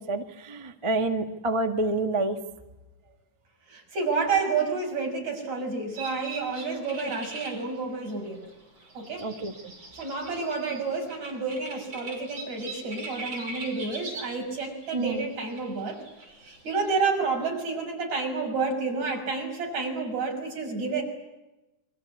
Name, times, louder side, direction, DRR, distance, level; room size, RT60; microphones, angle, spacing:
voice 1, 0.0-2.4 9.2-9.7 14.9-15.2, right 2 dB, 20° right, 5 dB, 0.8 m, -28 dB
voice 2, 3.7-8.4 8.9-9.3 9.9-16.0 16.4-21.0, right 4 dB, 70° right, 1 dB, 7.6 m, -30 dB
sound 1, 6.0-17.3, right 3 dB, 40° right, 6.3 m, -42 dB
28.0 x 23.5 x 8.5 m, 1.0 s
omnidirectional pair, 3.3 m